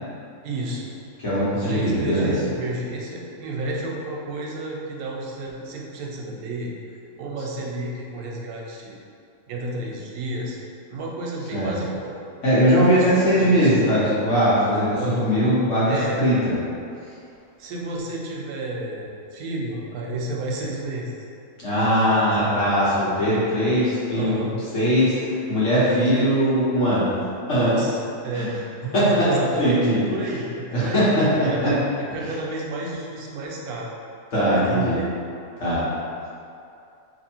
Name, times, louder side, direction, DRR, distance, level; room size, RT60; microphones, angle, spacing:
voice 1, 0.4-0.9 1.6-6.7 7.2-9.0 9.5-10.6 10.9-12.1 12.9-14.1 15.0-15.3 15.8-16.2 17.6-21.1 22.1-22.6 24.1-24.5 27.6-28.6 29.0-33.9 34.5-35.1, right 2 dB, 85° right, -2 dB, 1.1 m, -31 dB
voice 2, 1.2-2.3 11.5-11.7 12.4-16.5 21.6-24.3 24.7-27.1 27.5-27.7 28.3-28.5 28.9-29.1 29.6-30.0 30.7-31.7 34.3-35.0 35.6-35.8, equal, 60° left, -10 dB, 1.5 m, -20 dB
2.9 x 2.7 x 4.3 m, 2.5 s
omnidirectional pair, 1.5 m